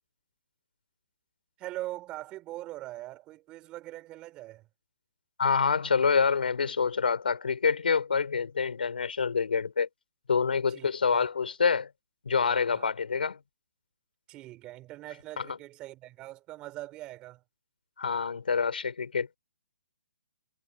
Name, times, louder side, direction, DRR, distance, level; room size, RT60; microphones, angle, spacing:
voice 1, 1.6-4.7 10.7-11.3 12.7-12.9 14.3-17.4, right 16 dB, 15° right, 4.0 m, -42 dB
voice 2, 5.4-9.9 10.3-11.9 12.3-13.4 15.4-15.5 18.0-19.4, left 5 dB, 80° left, 3.8 m, -26 dB
hypercardioid pair, 165°, 5 cm